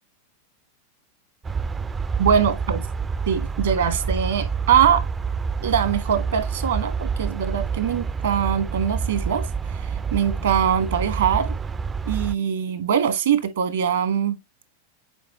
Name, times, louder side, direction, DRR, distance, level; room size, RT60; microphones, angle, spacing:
sound 1, 1.4-12.3, right 5 dB, 15° right, 0.4 m, -28 dB
voice 1, 2.2-2.8 3.3-5.1 5.6-9.5 10.1-11.5 12.0-14.4, right 8 dB, 65° right, 1.5 m, -22 dB
8.1 x 4.7 x 3.0 m
figure-of-eight pair, 90°, 0 cm